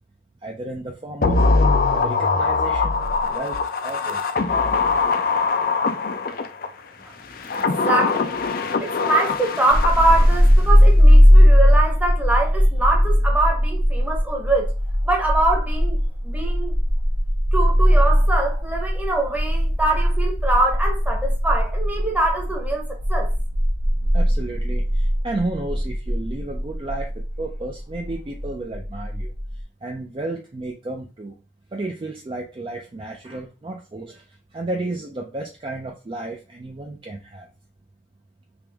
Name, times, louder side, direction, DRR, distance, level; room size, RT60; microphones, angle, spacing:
voice 1, 0.4-1.4 1.9-3.0 3.3-4.2 24.1-27.1 27.4-29.3 29.8-31.3 31.7-34.2 34.5-37.5, right 2 dB, 25° right, 0.4 m, -32 dB
sound 1, 1.2-6.7 7.3-10.5 10.8-10.9, left 4 dB, 50° left, 0.4 m, -22 dB
voice 2, 7.6-8.3 8.8-14.7 15.0-16.0 16.2-16.7 17.5-23.3, right 2 dB, 10° right, 0.8 m, -23 dB
sound 2, 9.7-29.6, equal, 80° right, 1.2 m, -18 dB
3.5 x 3.0 x 3.3 m
head